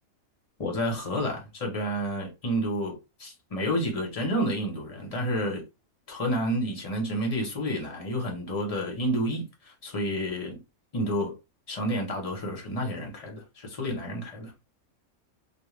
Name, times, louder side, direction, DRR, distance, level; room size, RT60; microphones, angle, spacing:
voice 1, 0.6-5.6 6.1-10.6 10.9-11.3 11.7-14.5, equal, 30° left, 0.8 m, -30 dB
2.4 x 2.3 x 3.2 m
omnidirectional pair, 1.5 m